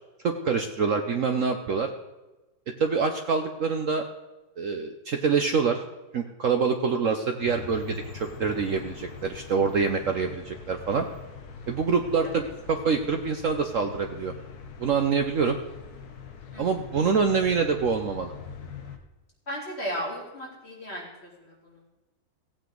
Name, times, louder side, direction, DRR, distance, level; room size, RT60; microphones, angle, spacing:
voice 1, 0.2-1.9 2.8-4.0 4.6-5.8 6.1-11.1 11.7-14.3 14.8-15.6 16.6-18.3, right 5 dB, 65° right, 5 dB, 0.7 m, -25 dB
sound 1, 7.4-19.0, left 6 dB, 55° left, 1.5 m, -43 dB
voice 2, 19.5-21.8, equal, 30° left, -4 dB, 3.7 m, -35 dB
16.0 x 8.8 x 3.9 m, 1.1 s
omnidirectional pair, 2.2 m